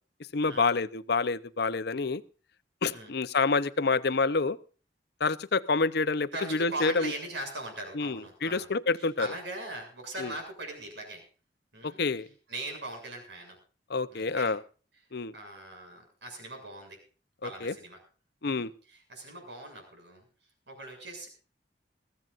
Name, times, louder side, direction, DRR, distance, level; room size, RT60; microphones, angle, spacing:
voice 1, 0.3-2.2 2.8-4.6 5.2-7.1 8.0-9.3 10.2-10.3 11.8-12.3 13.9-14.6 15.1-15.3 17.4-17.7 18.4-18.7, left 4 dB, 65° left, 14 dB, 0.8 m, -28 dB
voice 2, 6.3-8.7 9.0-11.2 11.7-12.0 12.5-13.6 14.1-14.6 15.3-17.0 17.4-18.0 18.4-20.3 20.7-21.3, right 2 dB, 75° right, 4 dB, 7.1 m, -40 dB
21.5 x 15.5 x 2.6 m, 0.38 s
head